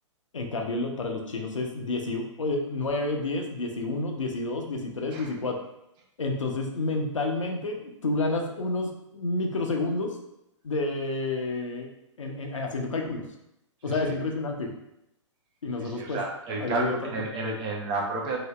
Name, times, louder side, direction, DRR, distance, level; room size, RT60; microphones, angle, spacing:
voice 1, 0.3-5.6 6.2-10.2 10.6-11.9 12.2-13.3 13.8-14.7 15.6-16.2 16.6-17.0 17.4-17.6, left 2 dB, 75° left, 2 dB, 0.7 m, -29 dB
voice 2, 15.8-18.4, right 3 dB, 25° right, -1 dB, 0.7 m, -31 dB
2.9 x 2.6 x 3.2 m, 0.83 s
figure-of-eight pair, 120°, 16 cm